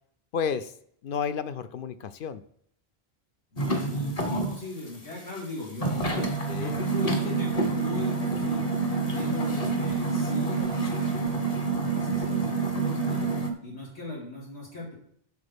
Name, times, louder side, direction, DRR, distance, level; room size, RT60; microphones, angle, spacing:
voice 1, 0.3-0.7 1.0-2.4 6.5-6.8, left 7 dB, 60° left, 12 dB, 0.7 m, -31 dB
voice 2, 3.5-8.7 9.0-13.3 13.6-14.9, left 2 dB, 85° left, -5 dB, 3.4 m, -39 dB
sound 1, 3.6-4.6 4.9-5.0 5.4-5.5 5.8-13.5, right 3 dB, 35° left, 1.1 m, -27 dB
8.2 x 5.9 x 5.2 m, 0.67 s
omnidirectional pair, 1.1 m